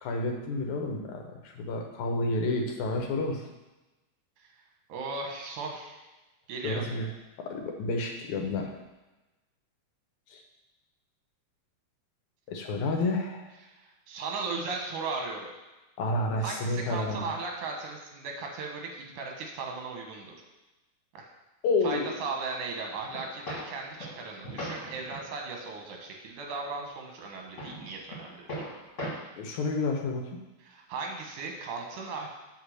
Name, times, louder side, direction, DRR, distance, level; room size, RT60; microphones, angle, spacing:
voice 1, 0.0-3.5 6.6-7.1 7.5-8.7 10.3-10.4 12.5-13.5 16.0-17.3 21.6-22.2 29.3-30.3, left 2 dB, 75° left, 2 dB, 2.2 m, -30 dB
voice 2, 4.9-6.0 6.5-6.8 13.6-15.5 16.4-20.3 21.1-21.3 21.8-28.4 30.6-32.3, right 4 dB, 80° right, 1 dB, 2.6 m, -37 dB
sound 1, 22.9-25.3 25.7-25.9 26.4-26.9 27.2-29.1, equal, 30° left, 1.7 m, -40 dB
8.1 x 3.5 x 6.4 m, 1.1 s
omnidirectional pair, 3.5 m